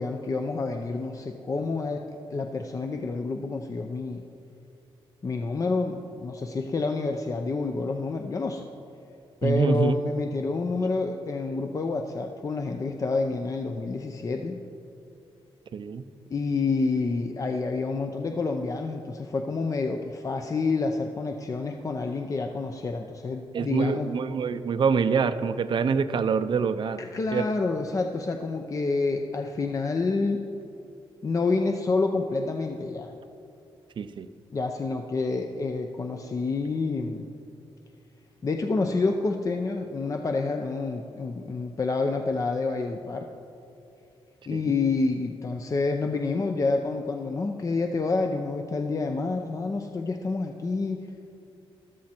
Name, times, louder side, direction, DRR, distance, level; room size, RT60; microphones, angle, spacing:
voice 1, 0.0-2.0 2.3-4.2 5.2-8.7 9.4-14.6 16.3-24.1 27.0-30.4 31.2-33.2 34.5-37.3 38.4-43.3 44.5-51.1, left 3 dB, 35° left, 4 dB, 0.6 m, -28 dB
voice 2, 9.4-10.0 15.7-16.0 23.5-27.0 27.3-27.5 34.0-34.3 44.5-44.8, right 5 dB, 55° right, 11 dB, 0.6 m, -25 dB
14.0 x 12.5 x 4.4 m, 2.6 s
cardioid pair, 115°, 10 cm